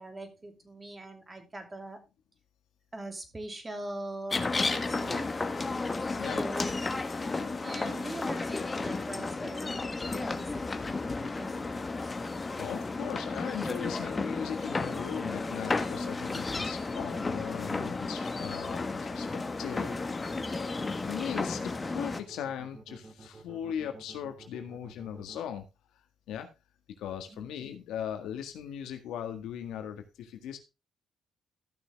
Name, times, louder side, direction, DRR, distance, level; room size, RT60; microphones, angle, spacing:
voice 1, 0.0-2.0 2.9-4.4 4.7-5.4 6.3-12.1 27.3-27.5, right 2 dB, 20° right, 6 dB, 2.7 m, -42 dB
sound 1, 4.3-22.2, left 3 dB, 25° left, 1.4 m, -33 dB
voice 2, 12.6-19.3 19.6-20.4 21.1-25.7 26.3-26.5 27.0-30.6, left 9 dB, 85° left, 6 dB, 1.8 m, -38 dB
sound 2, 19.9-25.4, right 3 dB, 40° right, 2.3 m, -50 dB
14.5 x 6.2 x 3.5 m, 0.27 s
cardioid pair, 90°, 0 cm